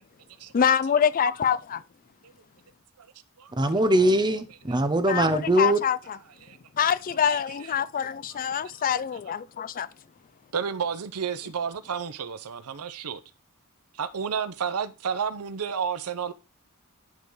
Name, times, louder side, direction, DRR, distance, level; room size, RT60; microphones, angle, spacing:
voice 1, 0.5-1.8 5.1-6.0 6.8-9.9, left 8 dB, 40° left, 0.4 m, -25 dB
voice 2, 3.6-5.8, right 1 dB, 20° right, 0.8 m, -22 dB
voice 3, 10.5-13.2 13.9-16.3, right 6 dB, 85° right, 0.7 m, -31 dB
10.5 x 3.7 x 4.7 m
head